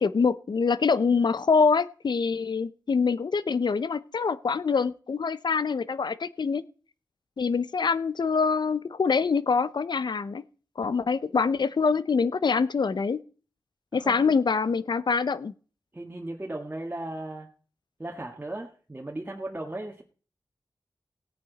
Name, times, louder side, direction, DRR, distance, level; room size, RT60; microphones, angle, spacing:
voice 1, 0.0-6.6 7.4-10.4 10.8-13.2 13.9-15.5, left 5 dB, 70° left, 16 dB, 0.6 m, -25 dB
voice 2, 15.9-17.5 18.0-20.0, right 1 dB, 25° right, -1 dB, 1.7 m, -36 dB
17.0 x 8.8 x 4.0 m, 0.39 s
cardioid pair, 55°, 8 cm